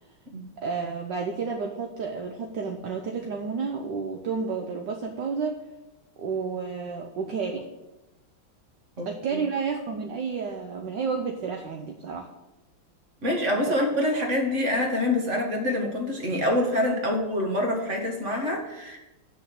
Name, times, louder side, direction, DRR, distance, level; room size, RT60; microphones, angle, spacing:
voice 1, 0.6-5.6 6.2-7.7 9.0-12.3 13.7-13.8, right 5 dB, 65° right, 3 dB, 1.4 m, -31 dB
voice 2, 9.0-9.4 13.2-19.0, left 1 dB, 35° right, 1 dB, 2.1 m, -26 dB
8.9 x 6.3 x 8.0 m, 1.0 s
omnidirectional pair, 2.3 m